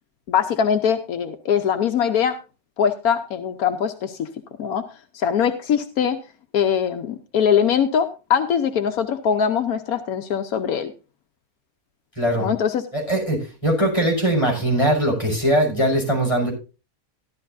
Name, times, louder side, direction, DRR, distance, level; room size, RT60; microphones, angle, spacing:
voice 1, 0.3-2.4 2.8-4.3 4.6-4.8 5.1-6.2 6.5-10.9 12.4-12.8, left 8 dB, 80° left, 8 dB, 1.3 m, -22 dB
voice 2, 12.2-12.5 12.9-16.5, right 1 dB, 20° left, -1 dB, 5.7 m, -21 dB
15.0 x 11.5 x 2.6 m, 0.31 s
omnidirectional pair, 1.5 m